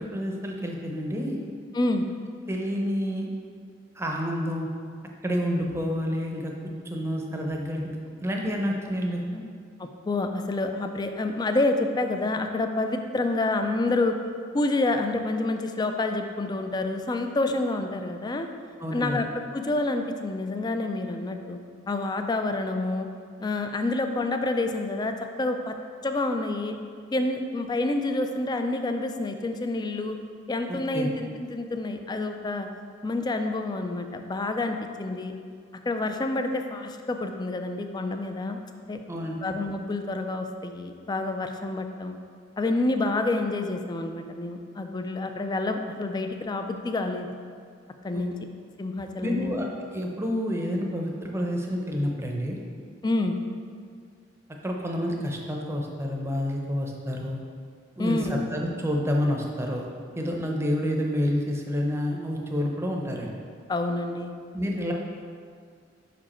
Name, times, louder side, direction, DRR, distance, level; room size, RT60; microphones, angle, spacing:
voice 1, 0.0-1.4 2.5-3.3 4.0-4.7 5.2-6.5 6.8-8.0 8.2-9.4 18.8-19.2 30.7-31.1 39.1-39.4 48.1-48.2 49.2-49.7 49.9-52.6 54.6-57.4 58.0-63.3 64.5-64.9, equal, 15° right, 0 dB, 0.7 m, -29 dB
voice 2, 1.7-2.0 9.8-14.1 14.5-18.5 18.9-21.6 21.9-23.1 23.4-25.7 26.0-26.8 27.1-30.2 30.5-32.7 33.0-35.3 35.9-38.6 38.9-39.0 39.4-42.2 42.6-47.3 48.0-48.3 48.8-49.5 53.0-53.4 58.0-58.4 63.7-64.3, left 2 dB, 25° left, 6 dB, 0.4 m, -28 dB
5.6 x 5.0 x 4.3 m, 2.1 s
head